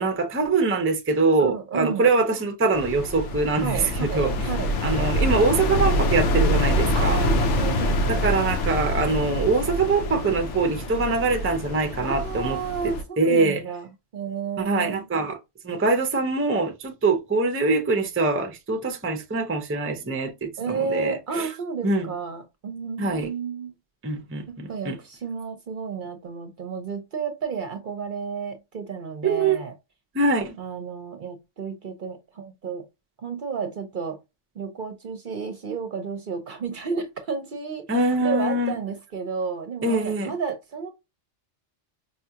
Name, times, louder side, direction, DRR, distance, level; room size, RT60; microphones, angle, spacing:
voice 1, 0.0-4.3 4.8-7.2 8.1-12.6 12.8-13.6 14.6-15.4 15.6-21.5 21.8-22.0 23.0-23.3 24.0-25.0 29.2-29.6 30.1-30.6 37.9-38.8 39.8-40.3, right 3 dB, 15° right, 0.4 m, -23 dB
voice 2, 1.4-2.1 3.6-4.7 6.9-8.3 12.0-13.9 14.1-15.1 20.6-23.7 24.5-29.7 30.6-32.9 33.2-34.2 34.5-40.9, right 5 dB, 50° right, 0.7 m, -32 dB
sound 1, 2.7-13.0, equal, 75° left, 1.0 m, -25 dB
4.9 x 2.3 x 2.7 m
omnidirectional pair, 1.2 m